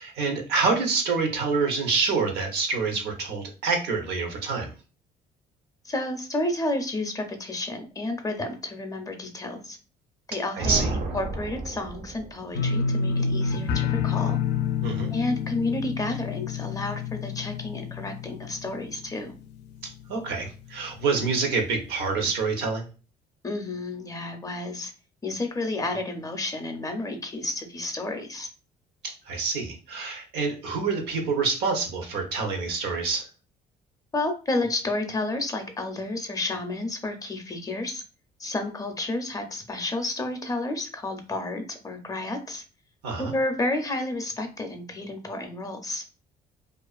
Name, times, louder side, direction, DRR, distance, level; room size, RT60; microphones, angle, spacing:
voice 1, 0.0-4.7 10.6-10.9 14.8-15.1 20.1-22.9 29.3-33.3 43.0-43.3, right 4 dB, 75° right, 3 dB, 0.8 m, -27 dB
voice 2, 5.8-9.8 10.3-14.4 15.1-19.3 23.4-24.9 25.2-28.5 34.1-38.0 38.4-42.6 43.2-46.0, left 2 dB, 20° left, 5 dB, 0.4 m, -31 dB
sound 1, 10.6-12.6, right 2 dB, 50° right, 0.4 m, -31 dB
sound 2, 12.5-19.4 19.7-20.3 20.6-20.7, left 5 dB, 75° left, 0.4 m, -28 dB
2.4 x 2.4 x 2.3 m, 0.35 s
cardioid pair, 110°, 17 cm